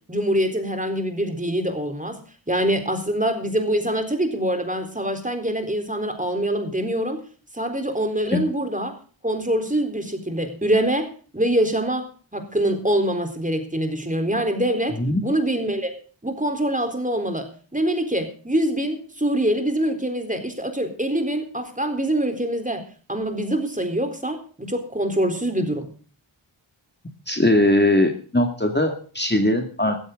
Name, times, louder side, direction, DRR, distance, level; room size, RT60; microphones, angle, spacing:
voice 1, 0.1-2.2 2.5-7.2 7.5-8.9 9.2-15.9 16.2-22.8 23.1-25.9, right 1 dB, 15° right, 5 dB, 4.0 m, -24 dB
voice 2, 27.3-30.0, left 1 dB, 20° left, 4 dB, 2.3 m, -20 dB
15.5 x 14.5 x 3.9 m, 0.40 s
wide cardioid pair, 60°, 47 cm